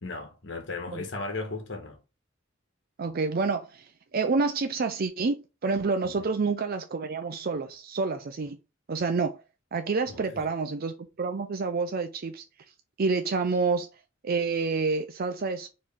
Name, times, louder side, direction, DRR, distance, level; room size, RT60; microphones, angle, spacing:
voice 1, 0.0-2.0 6.2-6.3 10.1-10.4, left 3 dB, 65° left, 1.2 m, -36 dB
voice 2, 3.0-8.6 8.9-9.4 9.7-12.4 13.0-13.9 14.2-15.7, right 4 dB, 50° right, 0.5 m, -28 dB
4.7 x 3.1 x 3.5 m
head